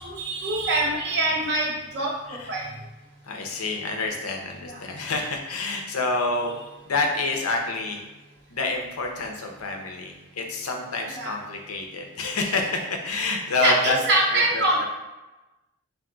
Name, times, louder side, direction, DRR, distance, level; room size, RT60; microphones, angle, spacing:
voice 1, 0.0-2.7 4.6-4.8 11.1-11.3 13.6-14.9, right 1 dB, 55° right, -2 dB, 0.8 m, -24 dB
voice 2, 3.2-6.5 6.8-8.0 8.5-14.0 14.3-14.9, left 3 dB, 85° left, 2 dB, 0.6 m, -28 dB
3.5 x 2.6 x 3.8 m, 1.1 s
head